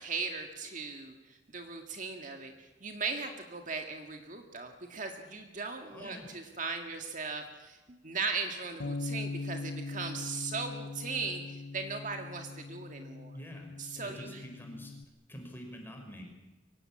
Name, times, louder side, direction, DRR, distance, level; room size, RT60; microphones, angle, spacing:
voice 1, 0.0-13.4 13.8-14.4, right 4 dB, 45° right, 4 dB, 2.0 m, -38 dB
voice 2, 5.9-6.3 13.3-14.9 15.3-16.2, equal, 10° left, 2 dB, 5.4 m, -46 dB
Bass guitar, 8.8-15.0, left 3 dB, 75° left, 0.9 m, -41 dB
24.0 x 18.5 x 8.8 m, 1.1 s
head